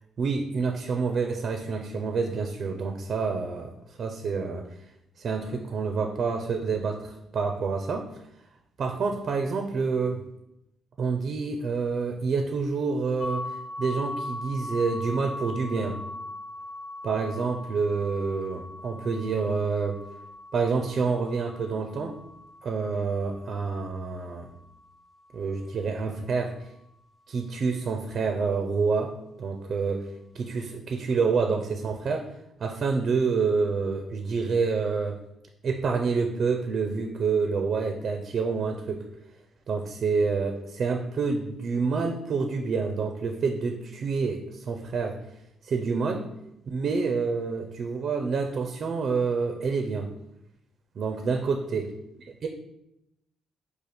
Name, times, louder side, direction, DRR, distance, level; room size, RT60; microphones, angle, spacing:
voice 1, 0.2-4.7 5.2-8.2 8.8-10.2 11.0-16.0 17.0-20.0 20.5-22.2 22.6-24.5 25.3-26.7 27.3-30.1 30.3-32.3 32.6-35.2 35.6-39.0 39.7-45.2 45.6-46.3 46.7-50.1 51.0-51.9 52.4-52.5, right 4 dB, 55° right, 4 dB, 0.5 m, -28 dB
sound 1, 13.2-24.9, left 2 dB, 30° left, 0.8 m, -40 dB
4.9 x 2.5 x 4.1 m, 0.83 s
cardioid pair, 90°, 0 cm